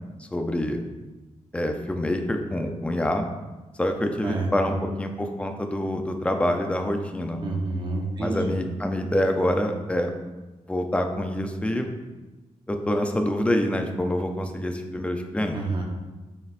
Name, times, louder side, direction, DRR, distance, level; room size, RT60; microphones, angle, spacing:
voice 1, 0.2-0.8 1.5-3.3 3.8-7.4 8.2-10.1 10.7-11.9 12.7-15.6, left 1 dB, 10° left, 4 dB, 0.5 m, -26 dB
voice 2, 4.2-4.7 7.4-8.6 15.5-15.8, right 3 dB, 40° right, 0 dB, 1.0 m, -29 dB
7.4 x 5.9 x 2.5 m, 1.2 s
wide cardioid pair, 165°, 12 cm